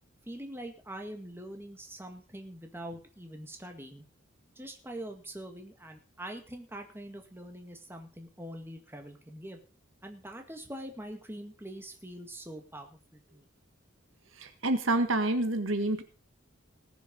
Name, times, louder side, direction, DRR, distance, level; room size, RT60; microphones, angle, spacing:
voice 1, 0.3-4.0 4.6-9.6 10.0-13.5, right 1 dB, 10° right, 4 dB, 1.9 m, -44 dB
voice 2, 14.4-16.0, right 2 dB, 80° right, 8 dB, 1.7 m, -28 dB
19.0 x 7.0 x 5.3 m, 0.35 s
head